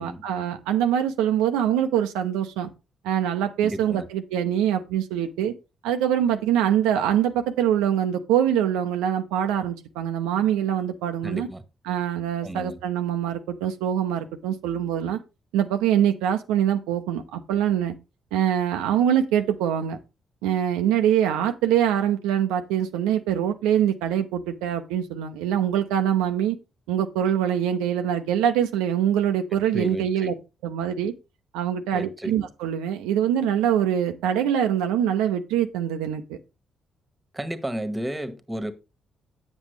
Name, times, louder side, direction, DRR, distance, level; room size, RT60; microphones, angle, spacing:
voice 1, 0.0-2.7 3.0-5.5 5.8-11.5 11.9-15.2 15.5-17.9 18.3-20.0 20.4-26.6 26.9-30.3 30.6-31.1 31.5-36.4, right 10 dB, 70° right, 0.7 m, -24 dB
voice 2, 3.6-4.0 11.2-11.6 12.4-12.8 29.5-30.3 31.9-32.4 37.3-38.7, right 1 dB, 15° right, 1.4 m, -32 dB
8.9 x 7.6 x 3.3 m
figure-of-eight pair, 40°, 0 cm